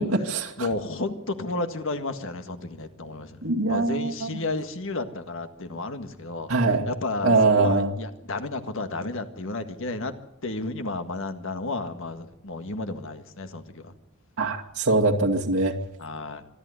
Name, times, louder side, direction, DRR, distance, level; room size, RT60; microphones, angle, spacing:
voice 1, 0.0-0.7 3.4-4.3 6.5-6.9 7.2-7.9 14.4-15.7, right 3 dB, 75° right, -1 dB, 2.2 m, -22 dB
voice 2, 0.6-3.4 3.7-6.5 6.9-10.1 10.4-13.9 16.0-16.4, left 2 dB, 65° left, 8 dB, 1.8 m, -32 dB
26.0 x 11.5 x 9.7 m, 0.82 s
head